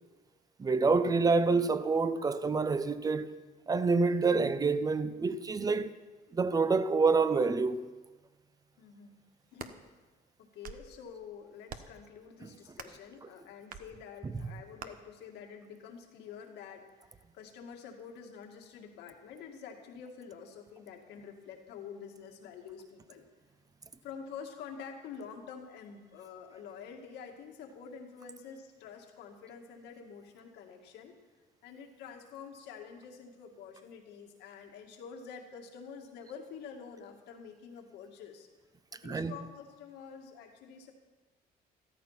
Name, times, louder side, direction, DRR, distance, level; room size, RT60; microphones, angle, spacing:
voice 1, 0.6-3.3 3.7-5.9 6.3-7.9 12.4-12.5 39.0-39.3, right 4 dB, 20° right, 0.7 m, -27 dB
voice 2, 8.8-9.2 9.5-9.8 10.4-23.2 24.0-31.2 31.6-38.5 38.9-40.9, left 6 dB, 85° left, 2.2 m, -48 dB
sound 1, 9.3-9.8 10.4-10.9 11.7-12.0 12.7-13.0 13.7-13.9 14.8-14.9, right 7 dB, 55° right, 1.1 m, -45 dB
14.0 x 13.5 x 5.8 m
cardioid pair, 110°, 17 cm